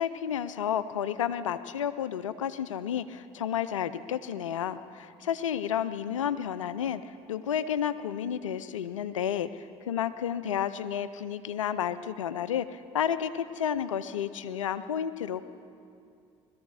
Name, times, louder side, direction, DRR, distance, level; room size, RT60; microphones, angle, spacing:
voice 1, 0.0-15.5, left 9 dB, 90° left, 14 dB, 0.5 m, -31 dB
20.5 x 14.0 x 4.8 m, 2.4 s
hypercardioid pair, 55°, 16 cm